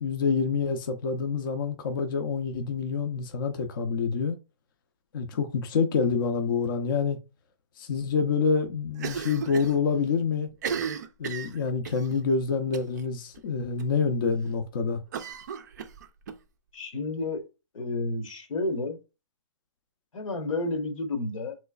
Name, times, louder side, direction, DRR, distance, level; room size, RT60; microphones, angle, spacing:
voice 1, 0.0-4.4 5.1-7.2 7.8-10.5 11.2-15.0, left 5 dB, 40° left, 0.5 m, -27 dB
Cough, 9.0-9.8 10.0-10.1 10.5-12.1 12.7-13.0 13.3-13.4 13.8-13.9 15.1-16.4, right 7 dB, 35° right, 0.4 m, -35 dB
voice 2, 16.7-17.5 17.7-19.0 20.1-21.6, left 2 dB, 85° left, 1.1 m, -31 dB
3.2 x 3.0 x 2.3 m
hypercardioid pair, 165°, 17 cm